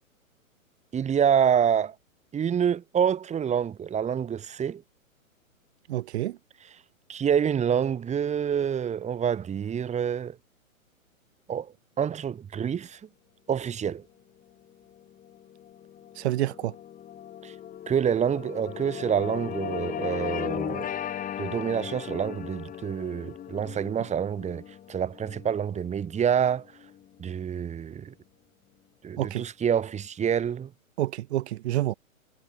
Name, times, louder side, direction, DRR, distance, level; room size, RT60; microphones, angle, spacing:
voice 1, 0.9-1.9 2.3-4.8 7.1-10.4 11.5-11.7 12.0-13.0 13.5-14.0 17.4-17.5 17.9-20.9 21.4-24.6 24.9-26.7 27.2-28.1 29.0-30.7, right 8 dB, 15° right, 8.0 m, -27 dB
voice 2, 5.9-6.4 16.1-16.8 29.2-29.5 31.0-31.9, right 15 dB, 50° right, 5.2 m, -28 dB
sound 1, 14.7-27.3, left 10 dB, 20° left, 4.8 m, -37 dB
hypercardioid pair, 130°, 42 cm